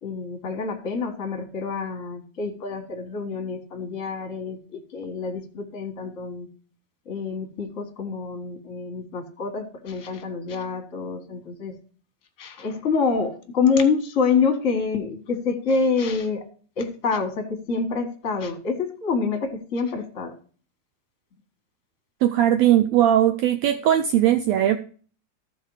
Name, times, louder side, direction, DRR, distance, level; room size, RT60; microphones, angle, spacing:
voice 1, 0.0-6.5 7.0-11.7 12.4-16.4 16.8-20.3, left 5 dB, 30° left, 3 dB, 1.5 m, -27 dB
voice 2, 22.2-24.8, right 11 dB, 75° right, 9 dB, 1.6 m, -19 dB
14.0 x 4.7 x 4.8 m, 0.41 s
omnidirectional pair, 3.6 m